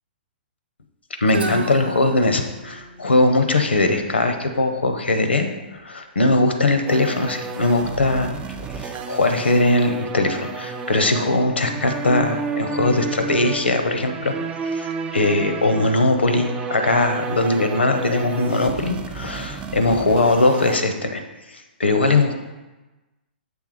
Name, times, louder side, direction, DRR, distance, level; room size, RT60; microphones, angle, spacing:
voice 1, 1.2-8.3 8.7-14.3 14.6-21.2 21.5-22.3, left 2 dB, 80° left, 6 dB, 0.8 m, -20 dB
Guitar, 1.3-5.1, right 2 dB, 70° right, 0.8 m, -33 dB
sound 1, 6.9-20.8, right 4 dB, 15° right, 0.4 m, -31 dB
7.1 x 3.5 x 4.7 m, 1.1 s
figure-of-eight pair, 120°, 6 cm